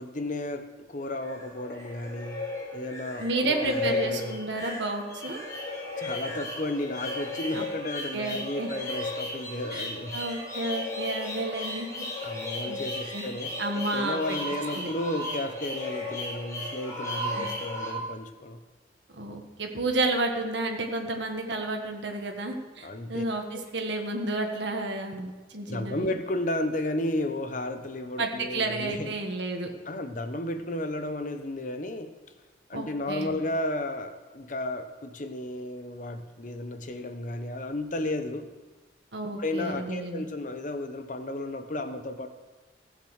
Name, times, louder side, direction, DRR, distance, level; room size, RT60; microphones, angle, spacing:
voice 1, 0.0-4.4 6.0-10.2 12.2-18.6 22.8-23.2 23.5-23.6 25.7-29.1 29.9-32.1 32.7-38.5 39.4-42.3, left 1 dB, 45° left, 8 dB, 0.9 m, -33 dB
sound 1, 1.0-17.9, left 2 dB, 15° left, 4.4 m, -35 dB
voice 2, 3.2-5.4 7.5-7.6 8.1-8.7 9.7-9.9 10.1-12.0 12.7-12.8 13.1-13.3 13.6-14.4 14.7-14.9 17.3-17.5 19.2-26.1 28.2-29.7 32.7-33.4 39.1-40.3, right 2 dB, 75° right, 3 dB, 1.6 m, -31 dB
15.0 x 7.5 x 6.4 m, 1.2 s
head